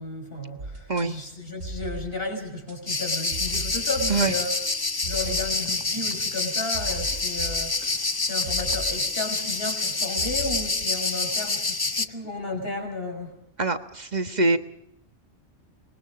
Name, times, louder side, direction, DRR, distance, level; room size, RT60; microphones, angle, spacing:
voice 1, 0.0-4.5 5.0-7.9 8.2-13.4, left 2 dB, 50° left, 3 dB, 6.1 m, -33 dB
sound 1, 0.6-1.1 1.6-2.4 2.7-2.8 3.3-10.8, right 2 dB, 90° right, 3.3 m, -39 dB
sound 2, 2.9-12.1, left 3 dB, 20° left, 0.7 m, -27 dB
voice 2, 13.6-14.6, right 3 dB, 35° right, 8 dB, 1.5 m, -24 dB
26.0 x 22.5 x 5.2 m, 0.79 s
omnidirectional pair, 1.3 m